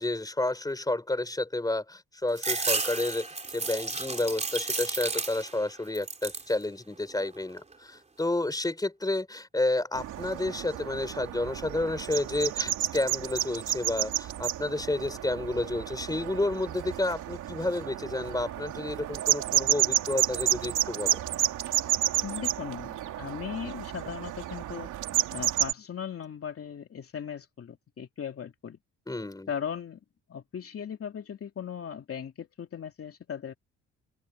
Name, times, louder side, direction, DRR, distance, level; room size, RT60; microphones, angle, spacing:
voice 1, 0.0-21.2 29.1-29.5, left 2 dB, 10° left, 4.4 m, -30 dB
sound 1, 2.4-5.6 5.9-6.5 7.0-7.7, right 3 dB, 20° right, 3.5 m, -32 dB
sound 2, 9.9-25.7, right 12 dB, 80° right, 2.6 m, -31 dB
voice 2, 22.2-24.9 25.3-28.8 29.5-30.0 30.3-33.5, left 8 dB, 50° left, 2.6 m, -38 dB
open air
cardioid pair, 90°, 30 cm